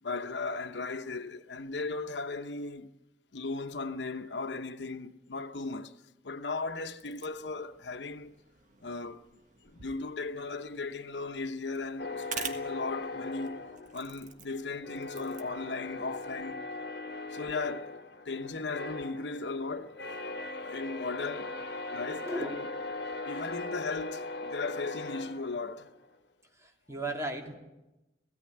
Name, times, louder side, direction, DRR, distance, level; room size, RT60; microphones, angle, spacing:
voice 1, 0.0-2.9 3.3-6.0 6.2-8.3 8.8-9.2 9.6-13.6 13.9-16.6 17.3-18.0 18.2-20.2 20.5-21.5 21.9-22.7 23.3-25.9, left 3 dB, 80° left, 0.9 m, -37 dB
sound 1, 7.0-16.6, right 6 dB, 45° right, 1.5 m, -48 dB
sound 2, 12.0-14.4 14.8-26.0, left 2 dB, 65° left, 1.3 m, -39 dB
voice 2, 22.2-22.6 26.6-27.6, right 1 dB, 15° right, 2.8 m, -36 dB
17.0 x 16.0 x 9.9 m
head